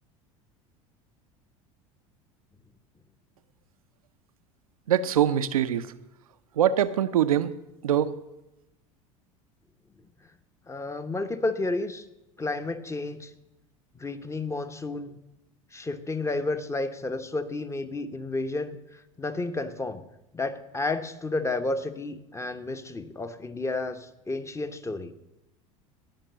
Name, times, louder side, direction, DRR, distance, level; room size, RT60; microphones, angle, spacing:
voice 1, 4.9-5.9 6.6-7.5 7.8-8.1, right 10 dB, 85° right, 13 dB, 0.6 m, -23 dB
voice 2, 10.7-12.0 12.4-13.3 13.9-15.2 15.7-20.1 20.3-25.1, left 2 dB, 15° left, 10 dB, 1.1 m, -31 dB
18.0 x 6.0 x 6.8 m, 0.93 s
hypercardioid pair, 80°, 18 cm